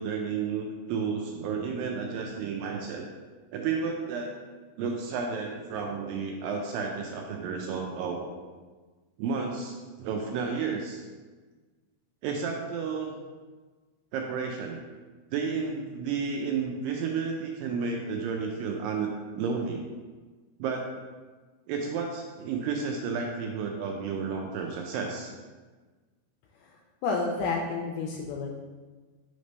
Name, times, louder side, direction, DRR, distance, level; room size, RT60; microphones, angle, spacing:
voice 1, 0.0-3.1 3.5-4.4 4.8-8.3 9.2-11.1 12.2-13.2 14.1-14.8 15.3-19.9 20.6-20.9 21.7-25.3, right 5 dB, 85° right, 1 dB, 2.0 m, -32 dB
voice 2, 27.0-28.5, left 4 dB, 85° left, -1 dB, 2.5 m, -30 dB
5.7 x 3.3 x 5.2 m, 1.3 s
omnidirectional pair, 4.5 m